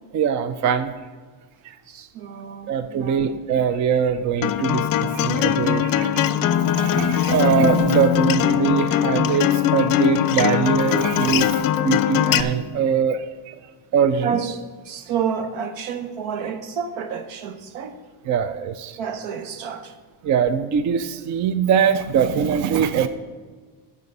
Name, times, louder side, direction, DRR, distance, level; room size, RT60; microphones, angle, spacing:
voice 1, 0.1-0.9 2.7-13.5 13.9-14.4 18.3-19.0 20.2-23.1, right 7 dB, 40° right, 0.5 m, -22 dB
voice 2, 1.9-3.4 14.2-18.0 19.0-20.0, right 7 dB, 75° right, 1.1 m, -30 dB
Acoustic guitar, 4.4-12.4, left 11 dB, 50° left, 0.5 m, -21 dB
14.5 x 5.1 x 5.4 m
cardioid pair, 140°, 47 cm